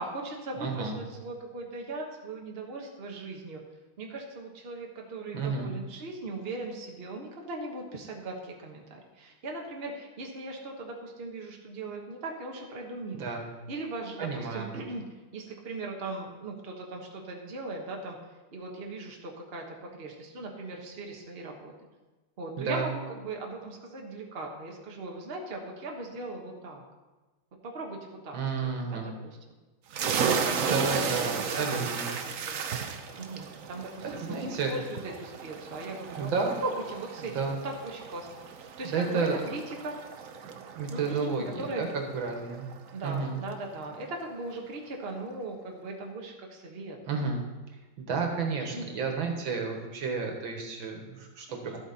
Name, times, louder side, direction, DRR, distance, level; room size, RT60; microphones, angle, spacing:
voice 1, 0.0-3.6 4.0-13.3 13.7-15.0 15.3-18.2 18.5-21.7 22.4-26.8 27.6-29.4 30.0-32.6 33.1-36.3 36.6-40.0 40.9-41.9 42.9-47.0 48.7-48.8 51.5-51.8, right 2 dB, 35° right, 0 dB, 1.4 m, -39 dB
voice 2, 0.6-1.0 5.3-5.7 13.1-13.4 14.2-14.8 22.6-22.9 28.3-29.1 30.7-32.1 34.0-34.7 36.1-36.6 37.2-37.6 38.9-39.4 40.7-42.7 43.0-43.4 47.1-47.4 48.0-51.8, right 4 dB, 80° right, 2 dB, 2.2 m, -31 dB
sound 1, 29.9-43.3, right 6 dB, 60° right, 0.9 m, -35 dB
12.5 x 8.2 x 4.2 m, 1.2 s
omnidirectional pair, 2.1 m